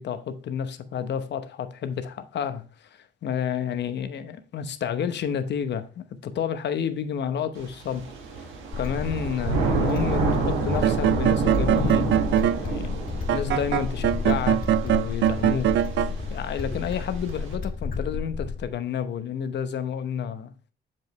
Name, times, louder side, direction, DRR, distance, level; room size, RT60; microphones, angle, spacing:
voice 1, 0.0-8.1 8.8-12.2 12.6-12.9 13.3-15.7 16.0-20.5, left 8 dB, 60° left, 0.9 m, -30 dB
Thunder / Rain, 7.6-17.5, right 3 dB, 85° right, 1.6 m, -29 dB
sound 1, 8.7-18.7, left 4 dB, 45° left, 1.9 m, -32 dB
sound 2, 10.7-12.6 13.3-16.1, right 11 dB, 70° right, 0.4 m, -23 dB
7.3 x 5.3 x 3.1 m
cardioid pair, 90°, 20 cm